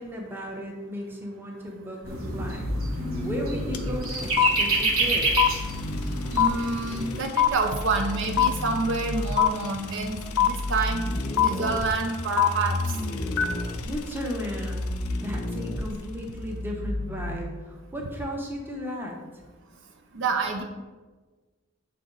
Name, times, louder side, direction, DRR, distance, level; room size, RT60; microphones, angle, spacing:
voice 1, 0.0-2.7 3.2-5.4 13.8-19.4, equal, 10° right, -1 dB, 0.9 m, -35 dB
sound 1, 2.0-4.0 4.9-6.5 7.4-9.5 10.2-17.4, left 1 dB, 25° left, 0.4 m, -32 dB
sound 2, 2.1-7.2, right 2 dB, 75° right, 1.1 m, -28 dB
sound 3, 3.7-3.8 4.0-15.2, left 10 dB, 85° left, 0.5 m, -25 dB
voice 2, 6.3-11.1 11.4-12.8 20.2-20.6, right 3 dB, 55° right, 4 dB, 0.5 m, -27 dB
6.8 x 3.9 x 3.9 m, 1.3 s
head